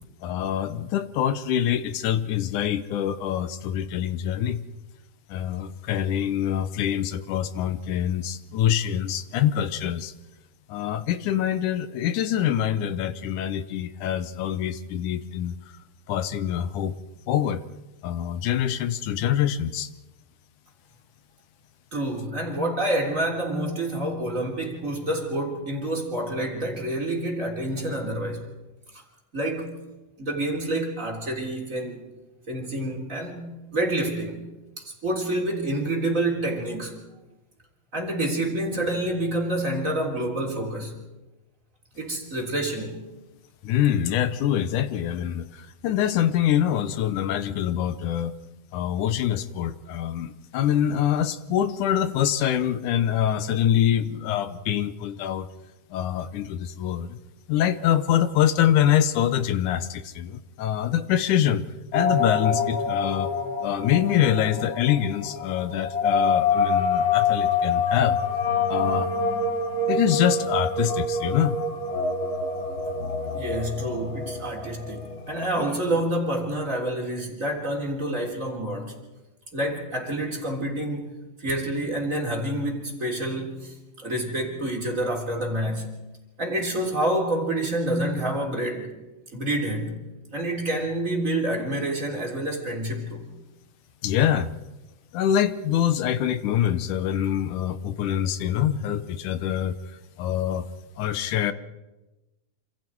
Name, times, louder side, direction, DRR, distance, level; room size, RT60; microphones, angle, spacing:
voice 1, 0.2-4.6 5.3-10.1 10.7-15.5 16.1-16.9 17.3-17.6 18.0-19.9 43.6-48.3 48.7-55.5 55.9-57.2 57.5-61.6 61.9-63.3 63.6-68.2 68.7-69.1 69.9-71.6 94.0-94.5 95.1-99.8 100.2-100.7 101.0-101.5, left 10 dB, 75° left, 2.3 m, -25 dB
voice 2, 21.9-28.4 28.9-29.0 29.3-29.7 30.2-32.0 32.5-34.4 34.8-37.0 37.9-41.0 42.0-43.1 73.3-78.9 79.5-81.1 81.4-86.0 86.4-88.9 89.3-90.0 90.3-93.3, right 1 dB, 25° right, 3.5 m, -28 dB
sound 1, 61.9-75.8, left 4 dB, 30° left, 2.3 m, -26 dB
27.5 x 26.5 x 4.6 m
omnidirectional pair, 3.9 m